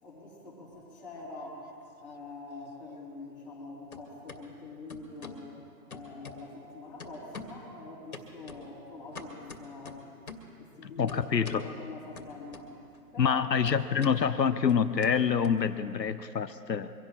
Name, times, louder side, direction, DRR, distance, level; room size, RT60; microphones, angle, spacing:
voice 1, 0.0-1.7 2.0-5.5 5.9-10.1 10.6-12.7 13.1-13.4, left 3 dB, ahead, -11 dB, 3.4 m, -45 dB
sound 1, 0.8-1.7 2.0-3.6 3.9-4.4 4.9-5.5 5.9-6.7 7.0-7.7 8.1-10.6 11.1-11.7 12.1-13.0 13.2-16.1, left 3 dB, 55° left, 2.2 m, -47 dB
voice 2, 10.8-11.7 13.2-16.9, left 7 dB, 80° left, 11 dB, 0.9 m, -27 dB
24.5 x 17.0 x 3.1 m, 2.5 s
figure-of-eight pair, 155°, 49 cm